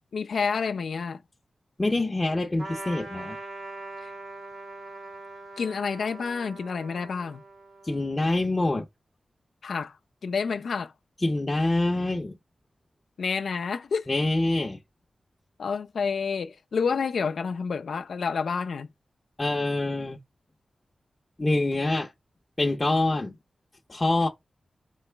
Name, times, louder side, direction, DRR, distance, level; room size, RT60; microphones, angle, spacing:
voice 1, 0.1-1.2 4.0-4.1 5.6-7.4 9.6-10.0 10.2-10.9 13.2-14.1 15.6-18.9, left 5 dB, 85° left, 0.3 m, -29 dB
voice 2, 1.8-3.4 7.8-8.9 11.2-12.4 14.1-14.8 19.4-20.2 21.4-22.1 22.6-23.4 23.9-24.3, left 2 dB, 25° left, 0.6 m, -25 dB
Trumpet, 2.6-8.5, right 2 dB, 90° right, 2.4 m, -42 dB
4.5 x 3.0 x 3.3 m
wide cardioid pair, 105°, 0 cm